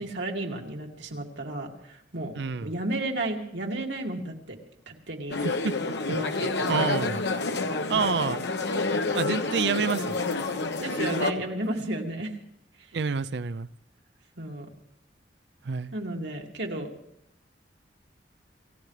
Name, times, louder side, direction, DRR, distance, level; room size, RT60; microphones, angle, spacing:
voice 1, 0.0-2.3 2.6-4.6 4.9-5.4 6.1-7.0 7.9-8.1 10.8-12.3 12.8-12.9 14.4-14.7 15.9-16.9, right 1 dB, 90° right, 0 dB, 2.4 m, -33 dB
voice 2, 2.4-2.7 5.4-5.8 6.7-7.2 7.9-8.4 9.1-10.2 12.9-13.7 15.6-15.9, right 5 dB, 70° right, 16 dB, 0.5 m, -28 dB
sound 1, 5.3-11.3, left 3 dB, 75° left, 1.2 m, -28 dB
26.5 x 16.0 x 3.3 m, 0.78 s
head